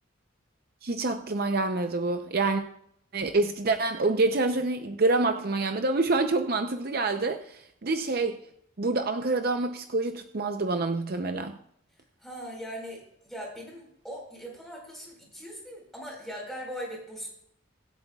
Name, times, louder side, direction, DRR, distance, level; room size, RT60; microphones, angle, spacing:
voice 1, 0.8-2.6 3.1-8.3 8.8-11.6, right 3 dB, 50° right, 0.6 m, -27 dB
voice 2, 12.2-17.3, equal, ahead, 4.3 m, -40 dB
24.0 x 8.3 x 2.3 m
head